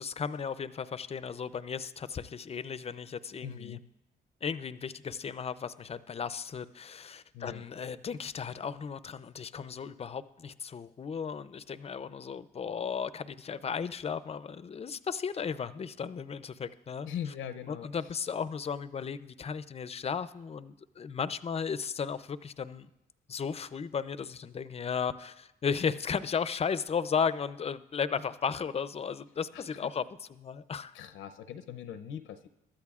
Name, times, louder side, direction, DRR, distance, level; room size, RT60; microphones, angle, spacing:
voice 1, 0.0-3.8 4.4-17.1 17.7-22.9 23.3-30.0 30.4-30.9, left 6 dB, 30° left, 15 dB, 0.5 m, -35 dB
voice 2, 3.4-3.8 7.3-7.6 17.0-17.9 29.5-29.9 30.9-32.5, left 9 dB, 85° left, 11 dB, 0.7 m, -41 dB
21.5 x 13.0 x 2.4 m, 0.88 s
cardioid pair, 90°, 20 cm